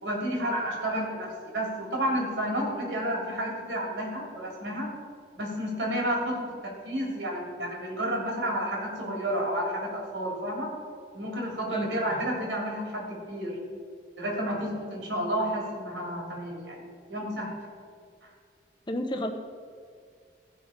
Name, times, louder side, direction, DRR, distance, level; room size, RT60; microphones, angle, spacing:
voice 1, 0.0-4.9 5.4-10.7 11.1-13.6 14.2-16.8 17.1-17.5, equal, 90° right, -2 dB, 3.4 m, -31 dB
voice 2, 18.9-19.3, left 1 dB, 25° left, 5 dB, 0.8 m, -31 dB
15.5 x 6.3 x 5.2 m, 2.2 s
head